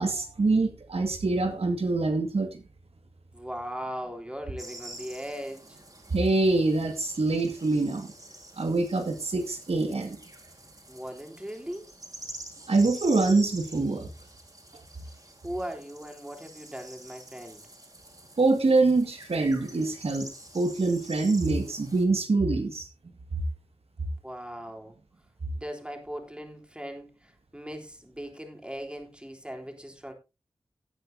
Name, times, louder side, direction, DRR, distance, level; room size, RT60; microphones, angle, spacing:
voice 1, 0.0-2.6 6.1-8.1 8.6-10.2 12.7-14.1 18.4-20.3 20.5-22.9, right 3 dB, 75° right, 2.1 m, -25 dB
voice 2, 3.3-5.8 10.9-11.9 15.4-17.6 24.2-24.9 25.5-30.1, equal, 10° right, 3.7 m, -39 dB
sound 1, 4.6-22.0, right 1 dB, 35° right, 4.6 m, -47 dB
17.5 x 9.0 x 2.8 m
wide cardioid pair, 60°, 10 cm